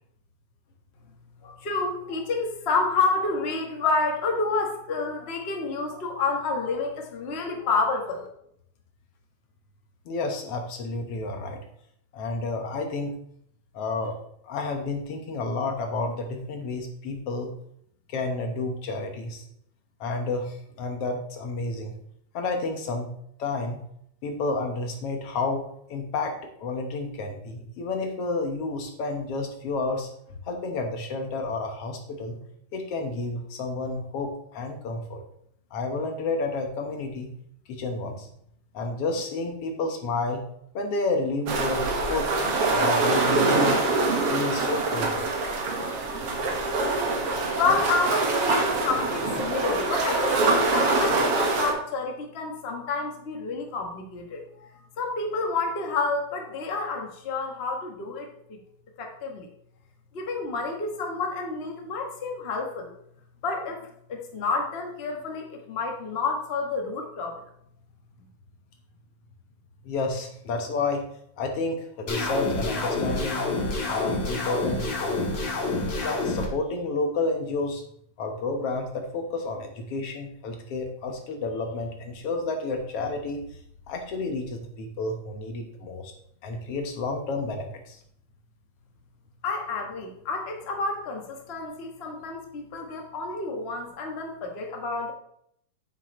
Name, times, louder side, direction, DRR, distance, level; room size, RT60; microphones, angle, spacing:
voice 1, 1.4-8.3 47.5-54.7 55.0-58.6 59.0-59.5 60.1-62.9 63.4-67.4 89.4-95.1, left 3 dB, 90° left, 2 dB, 0.5 m, -29 dB
voice 2, 10.1-11.6 12.1-13.2 13.7-14.1 14.4-17.5 18.1-19.4 20.0-21.9 22.3-23.1 23.4-23.8 24.2-32.4 32.7-35.2 35.7-37.3 37.7-38.3 38.7-40.4 40.7-42.3 42.7-43.8 44.3-45.3 69.8-71.0 71.4-73.4 73.9-75.4 76.0-77.8 78.2-83.6 83.9-86.1 86.4-88.0, left 3 dB, 60° left, 4 dB, 2.0 m, -30 dB
sound 1, 41.5-51.7, right 3 dB, 55° right, 2.2 m, -24 dB
sound 2, 72.1-76.5, left 2 dB, 40° left, 2.1 m, -28 dB
9.0 x 7.9 x 3.1 m, 0.71 s
omnidirectional pair, 3.4 m